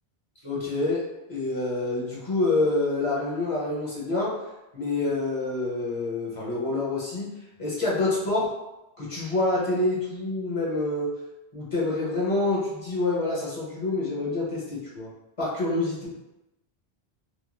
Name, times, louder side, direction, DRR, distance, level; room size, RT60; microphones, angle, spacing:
voice 1, 0.4-1.0 1.3-4.3 4.7-7.3 7.6-8.5 9.0-11.1 11.5-15.1 15.4-16.1, left 2 dB, 35° left, -6 dB, 0.9 m, -27 dB
3.0 x 2.7 x 2.3 m, 0.96 s
omnidirectional pair, 1.1 m